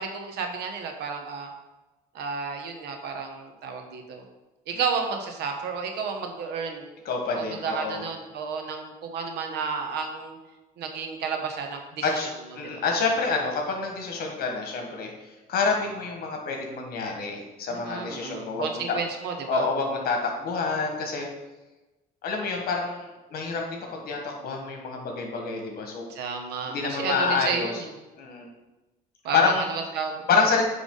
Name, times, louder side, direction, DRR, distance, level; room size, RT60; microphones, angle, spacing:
voice 1, 0.0-1.5 2.1-4.2 4.7-6.9 7.3-10.4 10.8-12.2 12.6-12.8 17.7-19.7 26.1-27.9 29.2-30.2, right 5 dB, 75° right, 4 dB, 1.1 m, -32 dB
voice 2, 7.0-8.0 12.0-15.1 15.5-19.0 19.5-21.3 22.2-26.1 26.7-27.7 28.2-28.5 29.3-29.6 30.3-30.6, left 4 dB, 65° left, 2 dB, 1.5 m, -27 dB
9.2 x 3.5 x 3.8 m, 1.1 s
cardioid pair, 110°, 17 cm